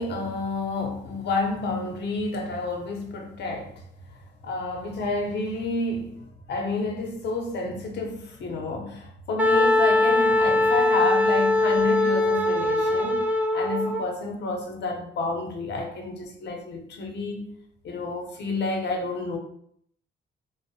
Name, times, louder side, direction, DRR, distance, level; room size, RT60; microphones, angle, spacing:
voice 1, 0.0-3.8 4.1-6.2 6.5-13.3 13.5-17.5 17.8-19.4, left 3 dB, 60° left, 2 dB, 0.7 m, -30 dB
Wind instrument woodwind instrument, 9.4-14.0, left 2 dB, 10° right, 0.3 m, -21 dB
2.6 x 2.0 x 2.6 m, 0.67 s
cardioid pair, 90°, 20 cm